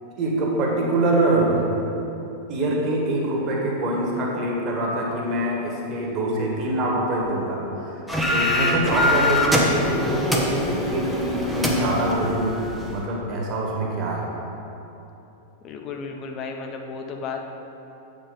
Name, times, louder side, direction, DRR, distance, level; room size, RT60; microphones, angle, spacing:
voice 1, 0.2-1.7 2.5-14.3, right 1 dB, 35° right, -2 dB, 1.8 m, -24 dB
sound 1, 8.1-13.0, left 1 dB, ahead, 1.0 m, -23 dB
voice 2, 15.6-17.5, left 5 dB, 35° left, 3 dB, 0.6 m, -33 dB
8.3 x 5.3 x 5.5 m, 2.9 s
figure-of-eight pair, 90°, 0 cm